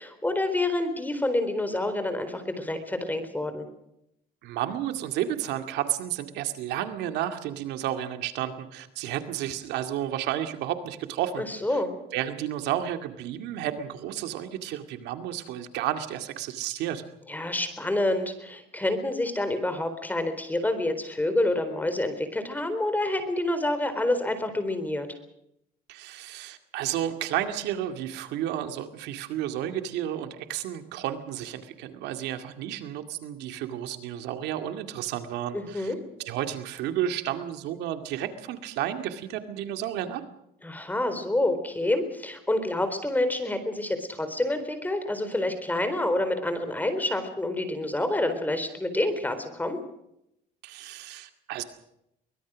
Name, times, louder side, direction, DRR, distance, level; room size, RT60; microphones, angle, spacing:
voice 1, 0.0-3.7 11.4-11.9 17.3-25.1 35.5-36.0 40.6-49.8, left 1 dB, 10° left, 9 dB, 4.1 m, -28 dB
voice 2, 4.4-11.4 11.7-11.8 12.1-17.0 25.9-35.9 36.2-40.2 50.6-51.6, right 11 dB, 90° right, 8 dB, 2.2 m, -32 dB
23.5 x 21.0 x 6.3 m, 0.80 s
cardioid pair, 110°, 17 cm